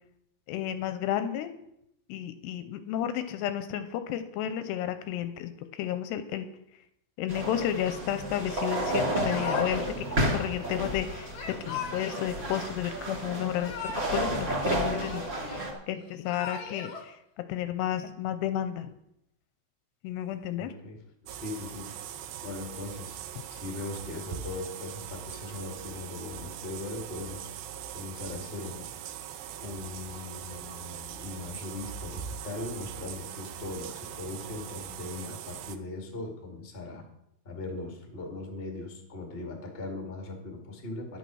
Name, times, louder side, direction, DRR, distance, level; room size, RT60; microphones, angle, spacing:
voice 1, 0.5-1.5 2.1-6.5 7.2-11.3 11.7-17.2 17.5-18.9 20.0-20.7, left 10 dB, 85° left, 10 dB, 2.7 m, -32 dB
sound 1, 7.3-15.7, right 1 dB, 25° right, 2.3 m, -31 dB
Yell / Crying sobbing, 9.2-10.0 11.3-12.3 13.4-14.3 14.6-15.6 16.1-17.0, left 6 dB, 55° left, 2.2 m, -39 dB
voice 2, 20.6-22.0 22.4-23.2 23.5-27.5 27.9-28.9 29.6-37.1 37.4-41.2, left 2 dB, 35° left, 2 dB, 0.8 m, -39 dB
sound 2, 21.3-35.8, right 9 dB, 85° right, 2.1 m, -41 dB
11.0 x 8.2 x 6.2 m, 0.78 s
omnidirectional pair, 5.1 m